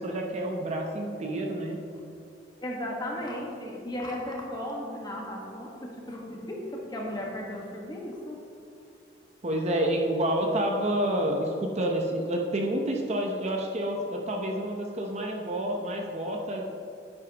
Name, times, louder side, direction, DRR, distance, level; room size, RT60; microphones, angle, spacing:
voice 1, 0.0-1.8 9.4-16.6, right 1 dB, 40° right, 1 dB, 0.8 m, -29 dB
voice 2, 2.6-8.4, left 1 dB, 25° left, -2 dB, 1.5 m, -35 dB
10.0 x 9.6 x 2.9 m, 2.6 s
head